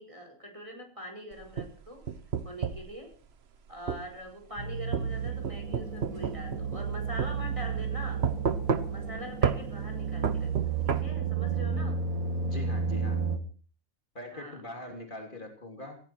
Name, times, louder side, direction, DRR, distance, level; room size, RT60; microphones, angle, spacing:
voice 1, 0.0-2.1 2.4-3.1 3.7-8.2 8.9-12.0 14.3-14.6, equal, 20° right, 4 dB, 4.9 m, -43 dB
sound 1, 1.3-2.9 3.9-4.1 4.9-6.9 7.2-7.3 8.2-9.1 9.4-9.6 10.2-11.0, right 6 dB, 50° right, 1.2 m, -30 dB
sound 2, 4.6-13.4, right 5 dB, 80° right, 2.3 m, -32 dB
voice 2, 12.4-13.2 14.1-16.0, left 1 dB, 35° left, 3 dB, 3.4 m, -42 dB
18.0 x 16.5 x 4.5 m, 0.40 s
omnidirectional pair, 1.4 m